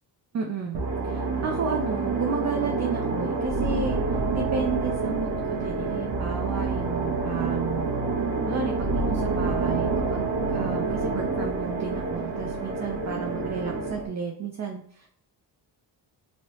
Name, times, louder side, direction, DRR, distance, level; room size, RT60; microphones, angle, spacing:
voice 1, 0.3-7.9 8.5-15.1, right 5 dB, 40° right, 2 dB, 0.4 m, -32 dB
sound 1, 0.7-14.1, right 3 dB, 75° right, 0.9 m, -27 dB
3.1 x 2.8 x 3.0 m, 0.64 s
wide cardioid pair, 145°, 43 cm